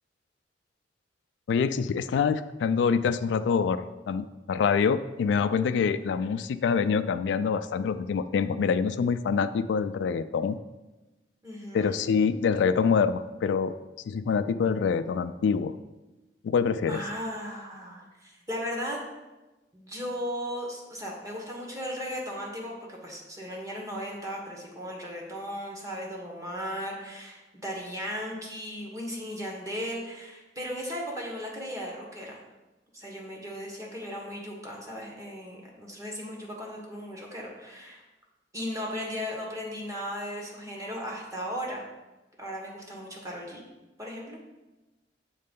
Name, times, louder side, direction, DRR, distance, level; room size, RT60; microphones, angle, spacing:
voice 1, 1.5-10.6 11.7-13.7 14.1-15.7 16.4-17.0, left 6 dB, 80° left, 11 dB, 0.3 m, -25 dB
voice 2, 11.4-12.0 16.9-19.1 19.7-32.4 32.9-38.0 38.5-41.9 42.4-43.6 44.0-44.4, equal, 20° right, -2 dB, 1.2 m, -36 dB
6.7 x 3.2 x 5.3 m, 1.1 s
head